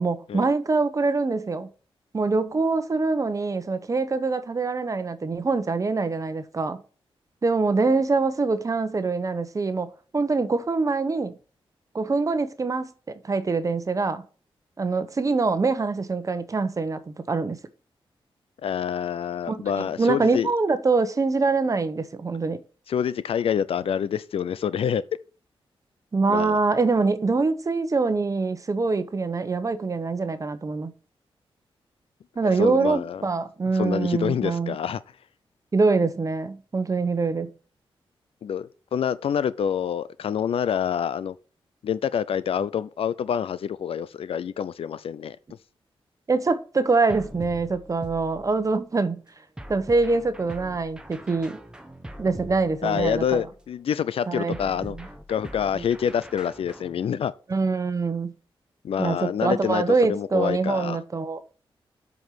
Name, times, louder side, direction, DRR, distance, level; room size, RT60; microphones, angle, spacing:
voice 1, 0.0-1.7 2.1-6.8 7.4-11.3 11.9-14.2 14.8-17.6 19.5-22.6 26.1-30.9 32.4-34.8 35.7-37.5 46.3-49.2 49.7-51.6 52.2-53.4 54.3-55.1 55.7-55.8 57.5-58.3 59.0-61.4, right 3 dB, 35° right, 1.0 m, -24 dB
voice 2, 18.6-20.5 22.9-25.0 26.3-26.6 32.6-33.3 33.7-35.0 38.4-41.4 41.8-45.4 52.8-55.0 55.3-57.3 58.8-59.8 60.1-61.0, left 8 dB, 80° left, 0.5 m, -27 dB
sound 1, 47.1-48.8 49.6-53.7 54.5-57.0, equal, 10° right, 1.1 m, -42 dB
7.9 x 5.3 x 5.8 m
wide cardioid pair, 110°, 10 cm